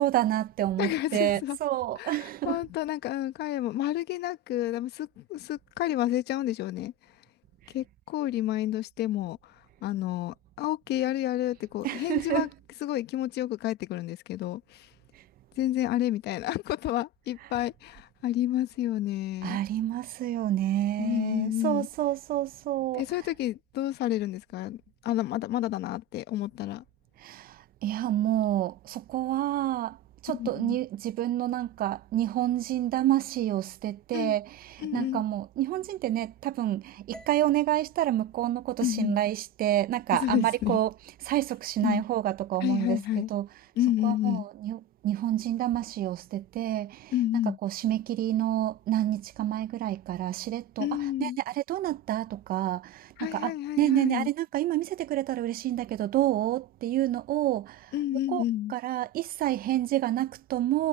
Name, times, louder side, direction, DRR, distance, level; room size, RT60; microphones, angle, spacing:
voice 1, 0.0-2.6 11.8-12.5 15.1-15.2 19.4-23.1 27.2-30.0 30.2-40.9 41.2-43.5 44.0-47.1 47.5-57.9 58.3-58.4 58.7-60.9, right 13 dB, 60° right, 0.5 m, -28 dB
voice 2, 0.8-1.6 2.0-6.9 7.7-9.5 9.8-12.5 12.8-14.9 15.6-19.6 21.0-21.9 22.9-26.8 30.3-30.8 34.1-34.3 34.8-35.2 38.8-39.2 40.2-40.8 41.8-42.0 42.6-43.3 43.8-44.4 47.1-47.6 50.8-51.4 53.2-54.3 57.9-58.7, left 14 dB, 75° left, 1.0 m, -30 dB
sound 1, 37.1-41.3, left 1 dB, 5° left, 4.7 m, -56 dB
cardioid pair, 110°, 17 cm